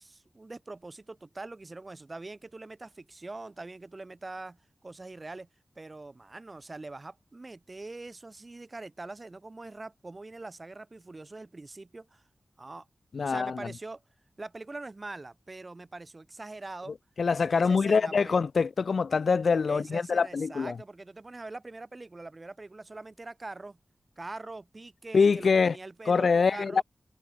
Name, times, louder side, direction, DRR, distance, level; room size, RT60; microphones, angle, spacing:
voice 1, 0.0-5.5 5.8-12.2 12.6-12.9 13.2-14.0 14.4-17.0 17.3-18.4 19.7-23.8 24.2-26.8, right 2 dB, 40° right, 5.3 m, -43 dB
voice 2, 13.1-13.7 17.2-20.8 25.1-25.8 26.1-26.8, left 5 dB, 70° left, 0.4 m, -24 dB
cardioid pair, 55°, 0 cm